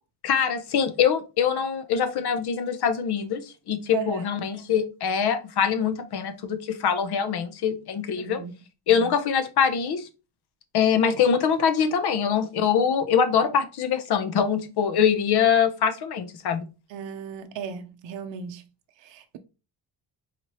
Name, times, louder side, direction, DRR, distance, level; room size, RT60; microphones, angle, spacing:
voice 1, 0.2-3.4 3.7-8.4 8.9-10.1 10.7-16.6, left 7 dB, 65° left, 0.7 m, -23 dB
voice 2, 3.9-4.3 8.2-8.5 16.9-18.6 19.0-19.4, right 6 dB, 85° right, 0.6 m, -35 dB
4.1 x 2.8 x 3.0 m
cardioid pair, 125°, 43 cm